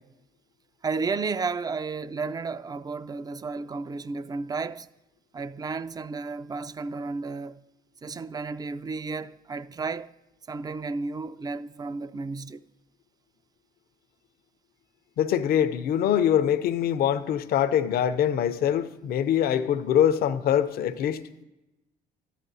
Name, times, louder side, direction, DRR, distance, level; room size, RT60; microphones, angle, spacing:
voice 1, 0.8-4.9 5.3-7.6 8.0-10.1 10.5-12.6, right 4 dB, 25° right, 0.3 m, -32 dB
voice 2, 15.2-21.2, left 9 dB, 65° left, 0.6 m, -23 dB
13.0 x 10.0 x 2.7 m
supercardioid pair, 75°, 17 cm